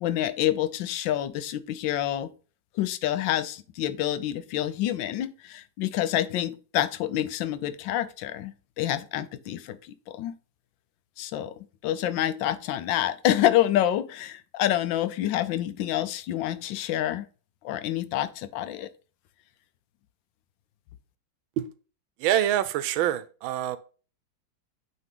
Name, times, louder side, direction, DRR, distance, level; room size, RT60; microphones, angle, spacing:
voice 1, 0.0-2.3 2.8-10.3 11.2-17.2 17.6-18.9, left 12 dB, 80° left, 1.3 m, -27 dB
voice 2, 22.2-23.8, right 12 dB, 90° right, 1.4 m, -25 dB
9.0 x 3.3 x 3.5 m
omnidirectional pair, 2.1 m